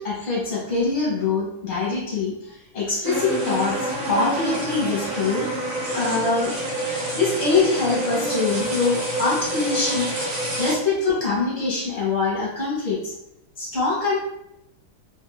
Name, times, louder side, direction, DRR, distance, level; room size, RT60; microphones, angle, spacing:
voice 1, 0.0-5.5 5.9-6.5 7.1-10.1 10.6-13.1 13.6-14.2, left 4 dB, 40° left, -6 dB, 1.2 m, -24 dB
sound 1, 3.0-10.8, right 1 dB, 70° right, 0.7 m, -27 dB
3.4 x 2.7 x 2.2 m, 0.82 s
omnidirectional pair, 2.4 m